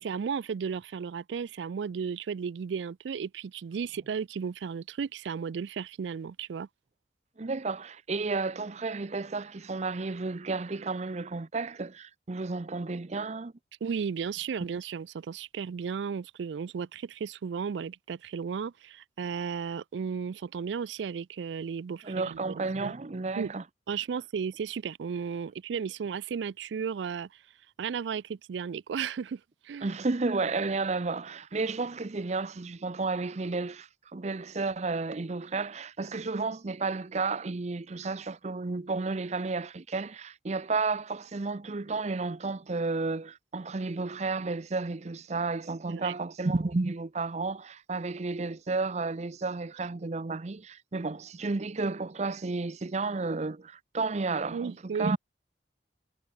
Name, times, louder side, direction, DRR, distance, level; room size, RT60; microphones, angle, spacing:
voice 1, 0.0-6.7 13.8-22.9 23.4-23.5 23.9-27.4 27.8-29.9 45.9-46.1 54.5-55.2, right 6 dB, 90° right, 0.4 m, -34 dB
voice 2, 7.4-13.5 14.6-14.7 22.0-23.6 29.8-55.2, right 3 dB, 40° right, 0.6 m, -32 dB
head